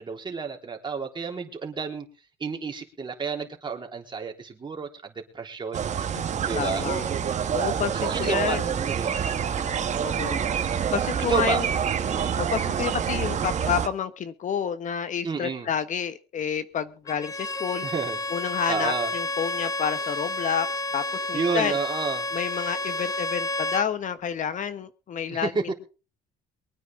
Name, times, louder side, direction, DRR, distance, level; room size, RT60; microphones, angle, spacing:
voice 1, 0.0-2.1 2.4-5.9 6.4-6.9 7.9-8.6 8.9-9.2 11.3-11.6 12.1-12.4 15.2-15.7 17.8-18.2 18.7-19.1 21.3-22.3 25.3-25.7, right 5 dB, 30° right, 2 dB, 3.5 m, -30 dB
sound 1, 5.7-13.9, right 8 dB, 45° right, 1.5 m, -27 dB
voice 2, 6.6-7.1 7.5-8.8 10.0-10.4 10.9-11.7 12.4-17.9 18.3-20.7 20.9-21.0 21.3-21.7 22.3-25.7, left 8 dB, 50° left, 12 dB, 1.1 m, -29 dB
Bowed string instrument, 17.1-23.9, left 2 dB, 20° left, 1.1 m, -30 dB
23.5 x 9.4 x 3.7 m, 0.35 s
cardioid pair, 110°, 17 cm